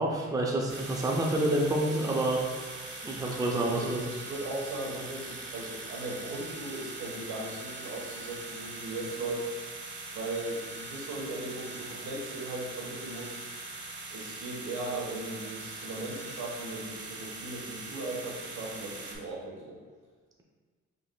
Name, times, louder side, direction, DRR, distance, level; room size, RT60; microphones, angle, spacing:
voice 1, 0.0-2.4 3.0-4.0, right 1 dB, 10° right, -1 dB, 0.5 m, -28 dB
sound 1, 0.7-19.2, right 3 dB, 35° right, 0.9 m, -42 dB
voice 2, 3.7-9.5 10.1-13.4 14.1-19.8, right 2 dB, 80° right, -3 dB, 1.2 m, -38 dB
4.9 x 3.6 x 2.2 m, 1.5 s
cardioid pair, 90°, 30 cm